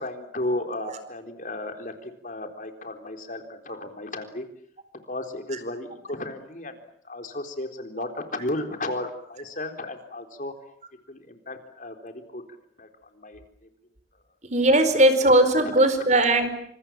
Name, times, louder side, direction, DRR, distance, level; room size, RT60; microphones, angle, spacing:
voice 1, 0.0-4.5 5.0-6.8 7.0-10.5 11.1-12.4 12.8-12.9 13.1-13.4, left 1 dB, 45° left, 6 dB, 3.9 m, -34 dB
voice 2, 14.4-16.5, right 1 dB, 40° right, 10 dB, 4.7 m, -19 dB
28.5 x 26.5 x 7.6 m, 0.67 s
head